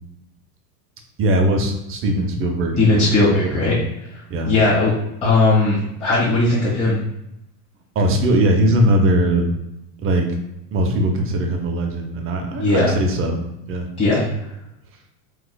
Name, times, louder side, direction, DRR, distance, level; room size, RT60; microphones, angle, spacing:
voice 1, 1.2-3.1 3.4-3.8 4.3-4.5 7.9-9.5 10.0-10.3 10.7-13.4 13.7-13.9, right 1 dB, 25° right, 3 dB, 0.6 m, -20 dB
voice 2, 2.8-3.7 4.4-4.9 5.2-7.0 12.6-12.9 14.0-14.2, left 2 dB, 15° left, -11 dB, 1.4 m, -17 dB
4.2 x 2.4 x 2.2 m, 0.86 s
supercardioid pair, 115°, 48 cm